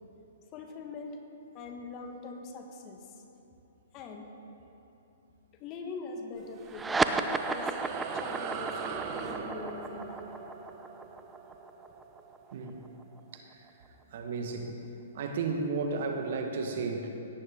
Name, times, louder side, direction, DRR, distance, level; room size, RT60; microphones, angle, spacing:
voice 1, 0.5-1.2 1.5-3.2 3.9-4.3 5.5-7.8 8.1-10.3, left 4 dB, 30° left, 3 dB, 1.3 m, -43 dB
sound 1, 6.4-13.2, right 6 dB, 40° right, 0.9 m, -41 dB
sound 2, 6.7-13.5, right 3 dB, 10° right, 0.4 m, -34 dB
voice 2, 14.1-14.7 15.1-17.1, right 4 dB, 60° right, 4 dB, 1.3 m, -33 dB
17.5 x 9.2 x 3.6 m, 2.9 s
hypercardioid pair, 135°, 0 cm